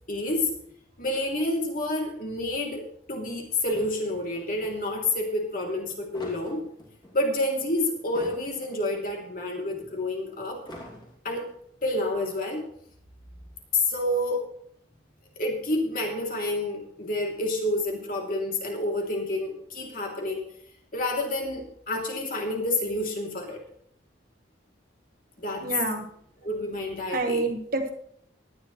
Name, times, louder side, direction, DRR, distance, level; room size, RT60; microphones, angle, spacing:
voice 1, 0.1-0.5 1.0-6.6 7.1-10.6 11.2-11.5 11.8-12.6 13.7-14.5 15.4-20.5 20.9-23.6 25.4-25.7 26.4-27.4, left 2 dB, 45° left, 0 dB, 3.0 m, -29 dB
sound 1, 3.5-4.8 5.8-7.2 7.9-9.0 9.2-9.3 10.5-11.5, left 1 dB, 25° left, 2.5 m, -45 dB
voice 2, 25.6-26.1 27.1-27.9, right 3 dB, 50° right, 4 dB, 1.6 m, -27 dB
18.0 x 11.0 x 3.2 m, 0.66 s
head